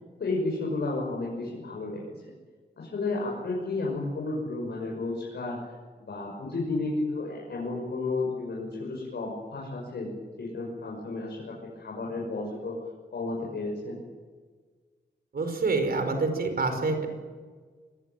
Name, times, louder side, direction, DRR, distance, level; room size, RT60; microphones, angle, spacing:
voice 1, 0.2-2.3 2.8-10.1 10.4-12.7 13.1-14.0, left 3 dB, 75° left, -2 dB, 6.5 m, -32 dB
voice 2, 15.3-17.1, right 3 dB, 60° right, 7 dB, 5.2 m, -27 dB
25.5 x 20.5 x 9.2 m, 1.5 s
wide cardioid pair, 165°, 18 cm